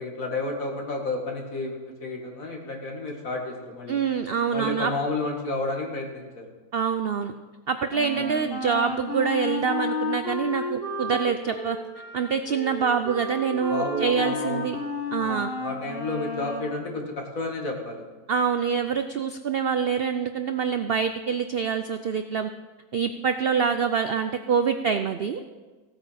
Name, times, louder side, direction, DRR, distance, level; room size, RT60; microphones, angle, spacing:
voice 1, 0.0-4.0 4.5-6.4 8.1-8.2 13.7-14.7 15.2-18.0, left 2 dB, 55° left, 0 dB, 2.5 m, -31 dB
voice 2, 3.9-4.9 6.7-7.3 7.7-11.8 12.1-14.8 15.1-15.5 18.3-22.5 22.9-25.4, right 6 dB, 75° right, 9 dB, 0.5 m, -25 dB
Wind instrument woodwind instrument, 7.9-16.8, left 3 dB, 35° left, 1.7 m, -32 dB
16.5 x 8.9 x 5.8 m, 1.3 s
omnidirectional pair, 1.7 m